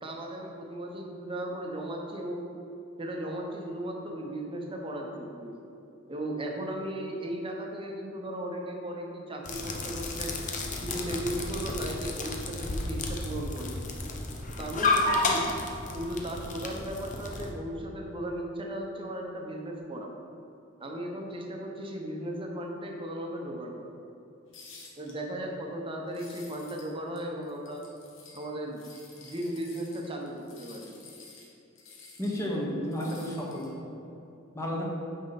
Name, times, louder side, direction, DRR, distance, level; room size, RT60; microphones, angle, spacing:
voice 1, 0.0-2.4 3.0-5.5 6.1-10.3 10.8-13.8 14.6-15.5 15.9-20.1 20.8-23.9 25.0-27.8 28.3-28.8 29.2-30.9, right 1 dB, 25° right, 0 dB, 1.0 m, -36 dB
sound 1, 9.5-17.5, left 2 dB, 40° left, 0.8 m, -32 dB
sound 2, 24.5-25.1 26.1-26.9 27.2-28.5 28.7-32.5 32.9-33.8, left 4 dB, 70° left, 1.4 m, -52 dB
voice 2, 32.2-34.0 34.5-34.8, equal, 15° left, -3 dB, 1.3 m, -32 dB
8.7 x 5.4 x 4.1 m, 2.8 s
head